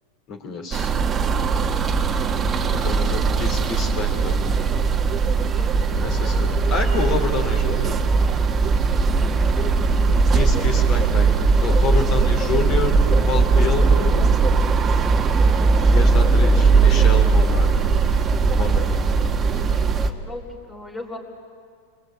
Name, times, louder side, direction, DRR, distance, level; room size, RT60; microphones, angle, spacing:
voice 1, 0.3-0.9 2.7-4.5 5.9-8.0 10.3-14.2 15.9-17.9 18.5-19.1 19.5-19.8, left 5 dB, 40° left, 3 dB, 4.0 m, -29 dB
sound 1, 0.7-20.1, right 4 dB, 20° right, 1.6 m, -19 dB
voice 2, 6.0-6.6 8.9-11.0 16.2-16.7 19.7-21.2, left 2 dB, 15° left, -1 dB, 4.2 m, -40 dB
27.5 x 21.0 x 9.3 m, 2.2 s
supercardioid pair, 125°, 0 cm